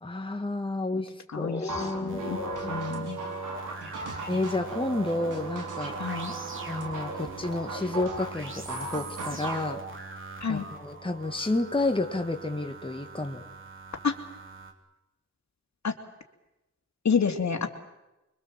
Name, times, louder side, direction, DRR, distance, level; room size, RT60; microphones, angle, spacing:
voice 1, 0.0-1.1 1.4-2.9 4.3-6.0 6.7-9.8 10.5-13.4, left 2 dB, 15° left, 5 dB, 2.0 m, -30 dB
voice 2, 1.3-3.2 6.0-6.3 10.4-10.7 14.0-14.1 15.8-15.9 17.0-17.7, left 6 dB, 65° left, 6 dB, 2.7 m, -29 dB
sound 1, 1.7-9.7, right 3 dB, 90° right, 4.5 m, -37 dB
sound 2, 2.1-14.7, right 3 dB, 40° right, 3.6 m, -41 dB
25.0 x 24.0 x 7.6 m, 0.96 s
cardioid pair, 70°, 30 cm